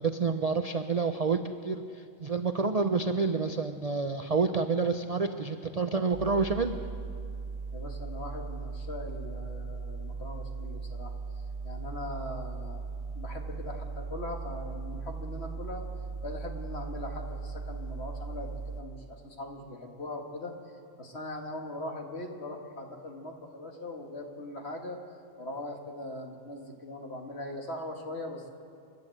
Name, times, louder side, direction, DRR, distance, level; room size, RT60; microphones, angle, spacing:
voice 1, 0.0-6.7, right 4 dB, 40° right, 7 dB, 0.6 m, -28 dB
sound 1, 6.1-18.8, right 4 dB, 65° right, 1.4 m, -38 dB
voice 2, 7.7-11.1 11.6-12.8 13.1-15.8 16.2-20.5 21.0-25.0 25.4-28.5, left 1 dB, 50° left, 2 dB, 2.2 m, -40 dB
29.0 x 12.0 x 7.8 m, 2.4 s
omnidirectional pair, 1.5 m